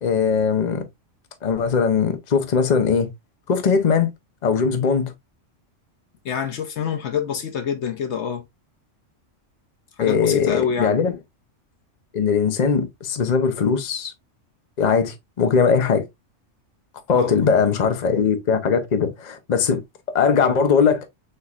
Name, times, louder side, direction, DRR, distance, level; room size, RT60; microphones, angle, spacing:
voice 1, 0.0-0.9 1.4-3.1 3.5-4.1 4.4-5.1 10.0-11.1 12.1-14.1 14.8-16.1 17.1-19.8 20.1-21.1, left 6 dB, 40° left, 0.8 m, -20 dB
voice 2, 6.2-8.5 10.0-11.0 17.1-17.4, left 7 dB, 65° left, 1.0 m, -26 dB
6.5 x 3.1 x 2.4 m
omnidirectional pair, 1.3 m